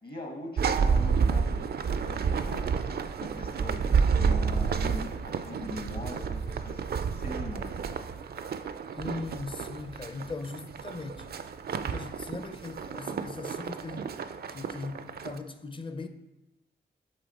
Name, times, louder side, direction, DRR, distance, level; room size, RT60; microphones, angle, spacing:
voice 1, 0.0-2.7 3.2-6.8 7.1-7.9, left 1 dB, 50° left, 1.1 m, -41 dB
sound 1, 0.6-15.4, right 6 dB, 55° right, 0.4 m, -30 dB
voice 2, 9.0-11.3 11.8-14.2 14.5-16.1, left 3 dB, 25° left, 0.5 m, -39 dB
8.2 x 3.2 x 4.1 m
cardioid pair, 65°, 19 cm